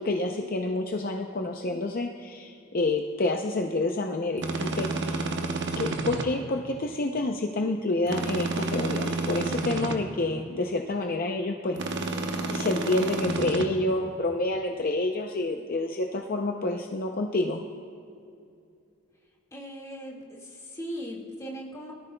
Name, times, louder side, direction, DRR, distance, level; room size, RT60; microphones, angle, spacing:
voice 1, 0.0-5.3 5.8-11.8 12.5-17.6, left 2 dB, 45° left, 3 dB, 0.5 m, -28 dB
sound 1, 4.4-6.3 8.1-10.0 11.8-13.7, right 3 dB, 55° right, 0.9 m, -30 dB
voice 2, 19.5-21.9, equal, 15° left, -3 dB, 1.8 m, -39 dB
23.0 x 13.5 x 2.2 m, 2.5 s
head